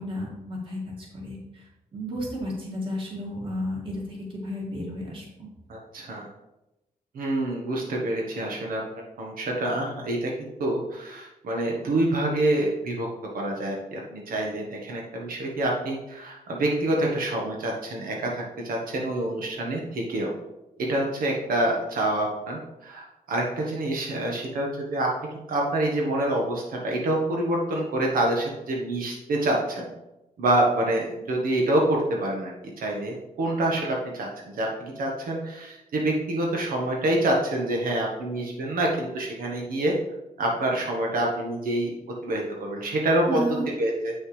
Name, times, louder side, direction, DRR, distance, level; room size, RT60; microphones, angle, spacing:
voice 1, 0.0-4.0 4.3-5.5 43.3-43.7, equal, 40° right, -3 dB, 2.2 m, -33 dB
voice 2, 5.7-6.3 7.1-8.8 9.2-13.1 13.3-20.3 20.8-25.1 25.5-29.9 30.4-32.5 32.8-39.9 40.4-41.9 42.2-43.4 43.8-44.1, right 1 dB, 85° right, -1 dB, 1.3 m, -26 dB
7.9 x 6.4 x 3.2 m, 0.95 s
wide cardioid pair, 150°, 14 cm